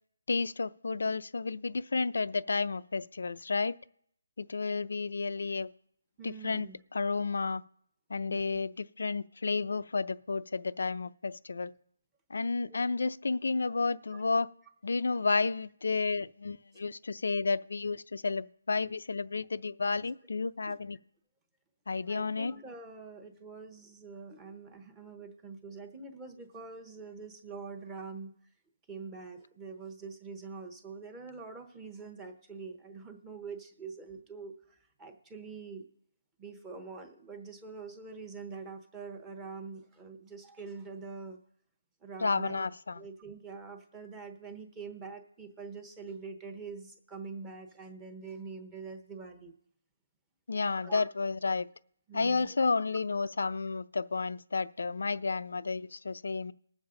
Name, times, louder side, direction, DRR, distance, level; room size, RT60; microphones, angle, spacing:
voice 1, 0.3-3.8 4.4-5.7 6.2-7.6 8.1-11.7 12.3-14.5 14.8-21.0 21.9-22.5 42.2-43.0 50.5-51.7 52.1-56.5, left 4 dB, 70° left, 15 dB, 0.5 m, -31 dB
voice 2, 6.2-6.8 8.3-8.6 12.7-12.8 14.1-14.2 20.7-20.8 22.1-28.3 28.9-35.8 36.4-41.4 42.0-42.7 43.0-49.5 50.8-51.1 52.1-52.7, right 4 dB, 10° right, 6 dB, 0.9 m, -45 dB
20.5 x 7.2 x 3.8 m, 0.69 s
hypercardioid pair, 170°, 0 cm